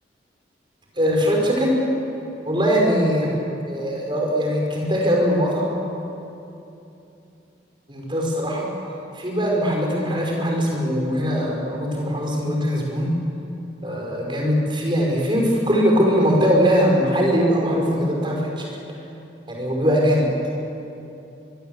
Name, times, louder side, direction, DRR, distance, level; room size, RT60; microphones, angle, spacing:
voice 1, 1.0-1.7 2.4-3.3 3.7-5.7 7.9-8.7 9.1-13.2 13.8-18.7 19.5-20.3, equal, 25° right, -1 dB, 5.5 m, -21 dB
24.5 x 21.5 x 8.1 m, 2.9 s
head